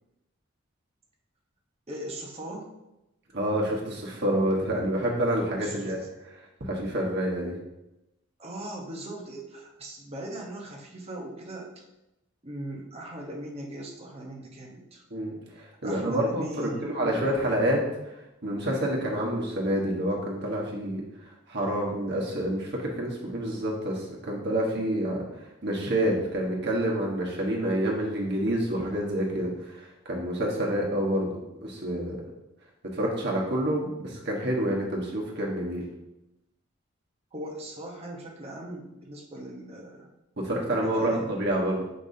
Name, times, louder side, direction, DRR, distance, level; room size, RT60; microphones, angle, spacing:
voice 1, 1.9-2.7 5.6-5.9 8.4-11.7 12.4-15.0 15.8-17.2 37.3-40.1 40.8-41.3, right 1 dB, 30° right, -1 dB, 1.1 m, -39 dB
voice 2, 3.3-6.3 6.6-7.5 15.1-18.1 18.4-31.3 31.6-32.2 32.9-35.8 40.4-41.8, right 1 dB, 55° right, -2 dB, 1.4 m, -28 dB
6.9 x 5.2 x 2.8 m, 0.95 s
head